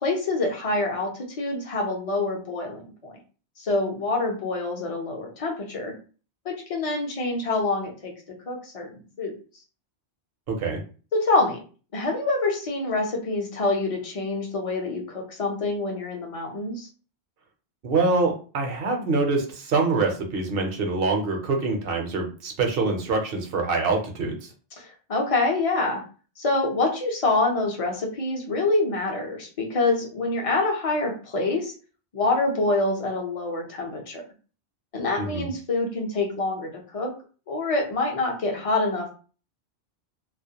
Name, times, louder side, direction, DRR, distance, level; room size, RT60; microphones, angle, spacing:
voice 1, 0.0-3.1 3.6-5.9 6.4-8.1 8.5-9.4 11.1-11.6 11.9-16.9 24.8-26.0 26.4-31.7 32.1-34.2 34.9-37.1 37.5-39.1, left 2 dB, 40° left, 1 dB, 0.6 m, -26 dB
voice 2, 10.5-10.8 17.8-24.5 35.2-35.5, right 3 dB, 60° right, 2 dB, 0.8 m, -25 dB
2.4 x 2.1 x 2.7 m, 0.37 s
omnidirectional pair, 1.1 m